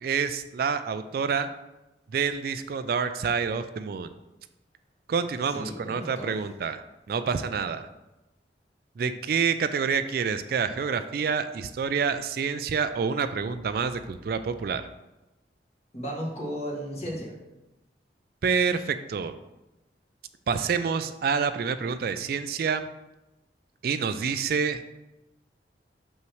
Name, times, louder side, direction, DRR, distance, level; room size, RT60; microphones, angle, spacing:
voice 1, 0.0-1.5 2.1-4.1 5.1-6.8 7.1-7.8 9.0-14.8 18.4-19.3 20.5-22.9 23.8-24.8, right 6 dB, 55° right, 10 dB, 0.3 m, -27 dB
voice 2, 5.4-6.3 15.9-17.3, equal, 35° left, -3 dB, 1.7 m, -34 dB
6.5 x 5.6 x 3.1 m, 0.99 s
head